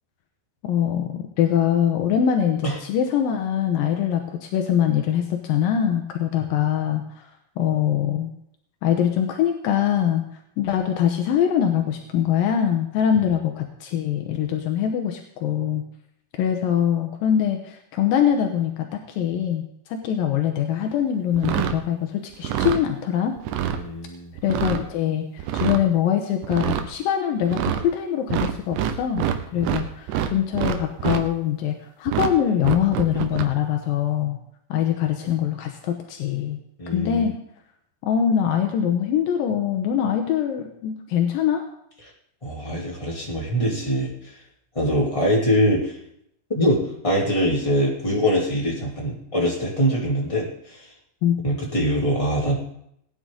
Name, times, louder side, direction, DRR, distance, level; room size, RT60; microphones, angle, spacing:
voice 1, 0.6-7.3 7.6-8.3 8.8-10.2 10.6-15.9 16.3-23.4 24.4-29.2 29.5-34.4 34.7-36.6 36.9-37.3 38.0-41.6 51.2-51.4, left 9 dB, 75° left, 4 dB, 2.1 m, -23 dB
sound 1, 21.3-21.8 22.3-22.8 23.4-23.8 24.4-24.8 25.4-25.8 26.4-26.9 27.4-27.8 28.3-29.8 30.1-31.2 32.1-32.3 32.6-33.5, right 10 dB, 80° right, 3.1 m, -25 dB
voice 2, 23.7-24.3 29.5-29.8 36.8-37.3 42.4-44.1 44.7-45.9 46.5-50.8 51.4-52.5, equal, 10° left, -3 dB, 1.7 m, -23 dB
19.5 x 9.9 x 3.8 m, 0.72 s
omnidirectional pair, 5.3 m